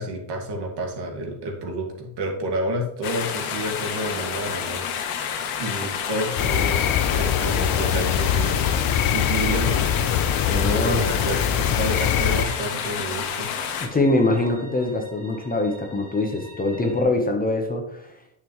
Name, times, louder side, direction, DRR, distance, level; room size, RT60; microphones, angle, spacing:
voice 1, 0.0-4.8 5.6-8.8 9.1-9.9 10.6-13.5 14.4-14.5, right 1 dB, 55° right, 1 dB, 2.3 m, -30 dB
sound 1, 3.0-13.9, left 7 dB, 75° left, 1.6 m, -29 dB
sound 2, 6.2-17.0, right 1 dB, 80° right, 3.6 m, -46 dB
sound 3, 6.4-12.4, left 9 dB, 45° left, 0.7 m, -23 dB
voice 2, 10.5-11.0 13.8-18.1, left 2 dB, 20° left, 3 dB, 1.1 m, -23 dB
8.7 x 7.0 x 3.2 m, 0.76 s
cardioid pair, 110°, 49 cm